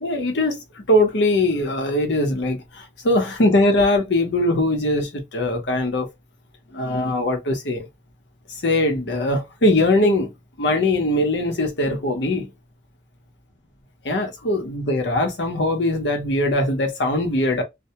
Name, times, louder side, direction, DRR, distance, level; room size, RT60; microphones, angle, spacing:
voice 1, 0.0-6.1 6.7-7.9 8.6-10.3 10.6-12.5 14.0-17.6, left 1 dB, 65° left, 0.7 m, -21 dB
2.1 x 2.1 x 2.8 m
head